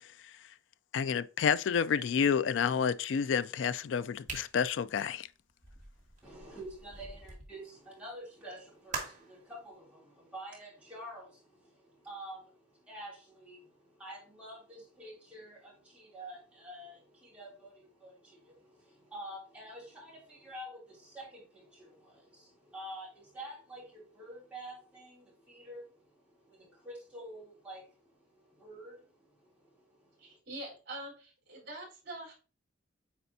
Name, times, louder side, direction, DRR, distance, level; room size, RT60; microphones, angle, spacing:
voice 1, 0.9-5.3, left 7 dB, 65° left, 0.3 m, -29 dB
sound 1, 4.2-7.5 8.9-9.4, right 4 dB, 40° right, 1.7 m, -43 dB
voice 2, 6.2-30.4, right 1 dB, 5° right, 2.9 m, -48 dB
voice 3, 30.2-32.3, right 1 dB, 55° right, 3.7 m, -44 dB
8.5 x 4.2 x 2.7 m
head